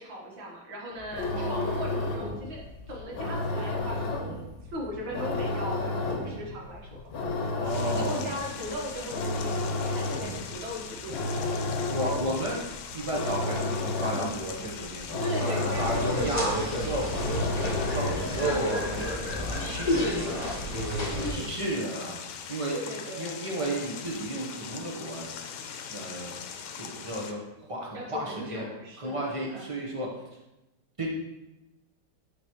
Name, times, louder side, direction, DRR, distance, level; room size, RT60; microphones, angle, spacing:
voice 1, 0.0-7.3 7.8-11.7 15.2-16.9 21.1-21.6 22.7-23.3 27.9-29.7, equal, 65° right, -2 dB, 1.9 m, -38 dB
sound 1, 1.0-18.5, left 2 dB, 60° left, 1.3 m, -32 dB
voice 2, 1.3-1.8 7.6-8.4 11.7-12.6 12.9-17.1 17.6-20.5 21.0-22.2 22.5-22.8 23.1-25.3 25.9-26.3 26.7-28.6 29.0-30.1 31.0-31.1, right 1 dB, 35° right, -3 dB, 0.5 m, -33 dB
sound 2, 7.7-27.3, left 7 dB, 85° left, 1.4 m, -41 dB
sound 3, 15.7-21.3, left 1 dB, 25° left, 1.0 m, -30 dB
9.5 x 3.9 x 3.0 m, 0.97 s
omnidirectional pair, 2.2 m